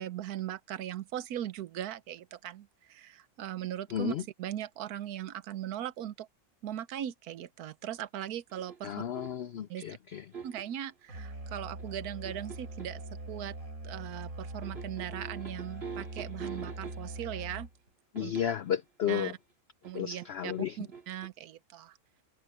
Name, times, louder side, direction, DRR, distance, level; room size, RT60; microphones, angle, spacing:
voice 1, 0.0-6.3 6.6-8.9 9.7-9.8 10.4-13.0 13.3-13.5 13.8-17.7 18.2-18.3 19.1-19.3 19.8-22.0, right 11 dB, 85° right, 1.3 m, -39 dB
voice 2, 3.9-4.2 8.8-10.2 18.1-19.3 19.9-20.8, left 9 dB, 65° left, 0.6 m, -33 dB
sound 1, 8.5-9.5 10.1-10.8 11.8-13.0 14.6-17.3 18.2-18.7 19.8-21.3, right 6 dB, 40° right, 2.4 m, -45 dB
Musical instrument, 11.1-17.9, right 2 dB, 60° right, 6.0 m, -42 dB
omnidirectional pair, 1.6 m